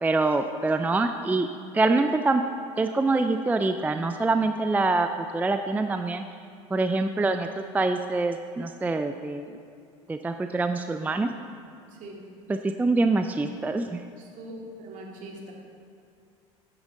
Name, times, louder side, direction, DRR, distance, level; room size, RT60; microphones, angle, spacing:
voice 1, 0.0-1.5 1.7-2.4 2.8-5.1 5.3-6.2 6.7-7.5 7.7-9.5 10.1-11.3 12.5-14.0, right 3 dB, 10° right, 7 dB, 0.4 m, -25 dB
voice 2, 14.2-14.5 14.8-15.5, right 2 dB, 55° right, -1 dB, 2.1 m, -42 dB
9.6 x 8.9 x 3.7 m, 2.4 s
hypercardioid pair, 85°, 16 cm